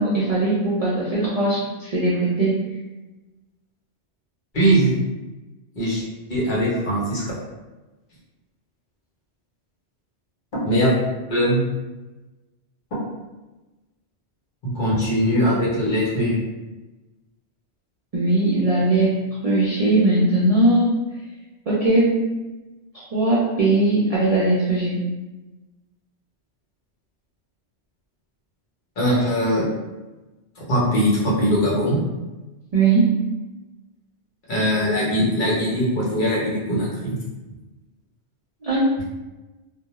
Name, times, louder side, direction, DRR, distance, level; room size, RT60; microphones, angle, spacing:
voice 1, 0.0-2.7 18.1-19.1 19.4-21.0 21.7-22.2 22.9-25.0 32.7-33.2 38.6-38.9, right 2 dB, 55° right, -7 dB, 0.4 m, -19 dB
voice 2, 4.5-4.9 5.7-6.0 6.3-7.2 10.6-10.9 11.3-11.6 14.6-16.3 29.0-29.6 30.7-32.0 34.5-37.2, equal, 50° left, -7 dB, 0.9 m, -20 dB
2.2 x 2.1 x 2.9 m, 1.1 s
omnidirectional pair, 1.2 m